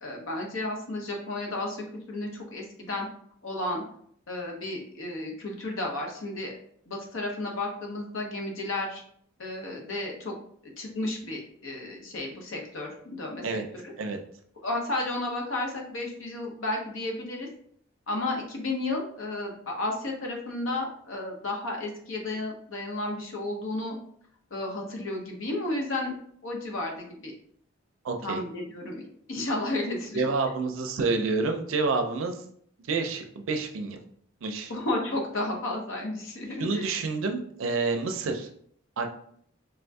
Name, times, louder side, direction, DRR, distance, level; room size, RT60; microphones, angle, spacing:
voice 1, 0.0-3.1 3.4-3.8 4.3-6.5 6.9-9.0 9.4-10.3 10.6-13.9 14.6-17.5 18.1-23.9 24.5-26.2 26.4-27.3 28.2-30.2 34.7-36.9, left 2 dB, 75° left, 0 dB, 0.7 m, -32 dB
voice 2, 28.0-28.4 30.1-32.4 32.9-34.0 34.4-34.7 36.6-38.5 39.0-39.1, right 3 dB, 75° right, 5 dB, 0.4 m, -28 dB
3.5 x 2.6 x 2.2 m, 0.63 s
head